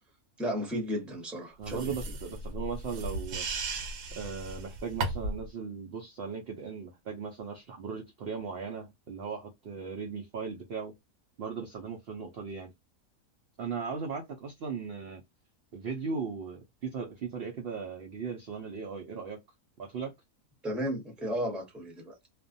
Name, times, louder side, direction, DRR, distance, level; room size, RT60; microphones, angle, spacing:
voice 1, 0.4-2.0 20.6-22.3, equal, ahead, 0.7 m, -34 dB
voice 2, 1.6-3.5 4.1-10.9 11.4-12.7 13.6-15.2 15.7-19.4 19.8-20.1, right 5 dB, 60° right, 0.6 m, -37 dB
sound 1, 1.6-5.5, right 2 dB, 80° right, 1.1 m, -36 dB
2.4 x 2.1 x 2.5 m
omnidirectional pair, 1.5 m